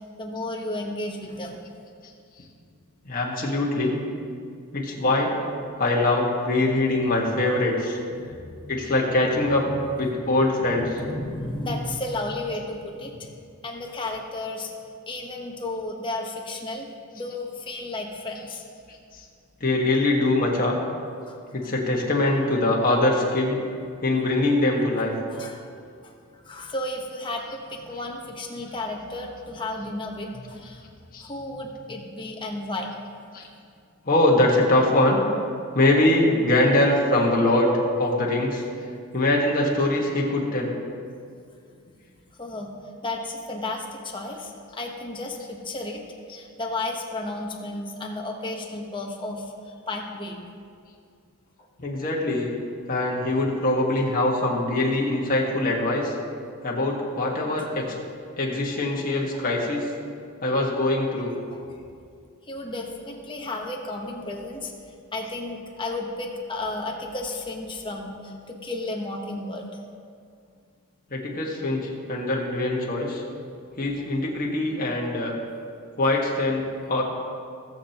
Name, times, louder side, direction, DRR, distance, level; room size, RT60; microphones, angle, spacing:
voice 1, 0.2-1.6 6.7-6.9 8.2-9.1 9.4-9.8 10.2-14.7 15.1-16.9 17.1-18.6 21.3-21.7 25.3-25.6 26.0-30.9 31.2-32.9 42.4-42.7 43.0-46.0 46.3-50.4 61.5-61.8 62.5-69.8, left 2 dB, 20° left, 1 dB, 1.1 m, -33 dB
voice 2, 3.0-4.0 4.7-5.4 5.8-8.0 8.7-9.6 10.0-10.9 19.1-19.2 19.6-20.8 21.5-23.6 24.0-25.1 31.1-31.3 33.3-33.4 34.0-35.3 35.7-37.7 38.0-38.6 39.1-40.7 51.8-52.5 52.9-56.1 56.6-57.9 58.4-59.9 60.4-61.3 71.1-73.2 73.8-75.4 76.0-77.0, left 2 dB, 40° left, -2 dB, 1.6 m, -23 dB
17.5 x 7.3 x 3.0 m, 2.3 s
head